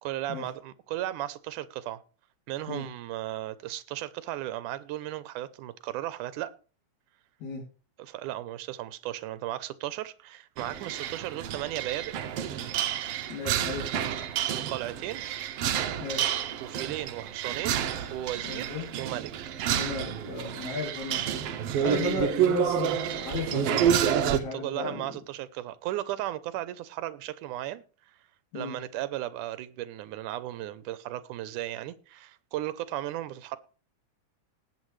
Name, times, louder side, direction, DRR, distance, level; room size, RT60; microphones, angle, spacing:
voice 1, 0.0-2.0 2.5-6.5 8.0-12.1 14.5-15.2 16.6-17.8 18.1-19.3 21.7-22.2 23.8-28.2 28.5-33.6, right 14 dB, 90° right, 2.3 m, -35 dB
sound 1, 10.6-24.4, right 9 dB, 65° right, 1.6 m, -29 dB
voice 2, 13.3-14.1 16.0-16.3 18.4-18.9 19.7-25.1 28.5-28.8, left 3 dB, 65° left, 4.2 m, -35 dB
19.0 x 8.2 x 3.2 m
omnidirectional pair, 3.5 m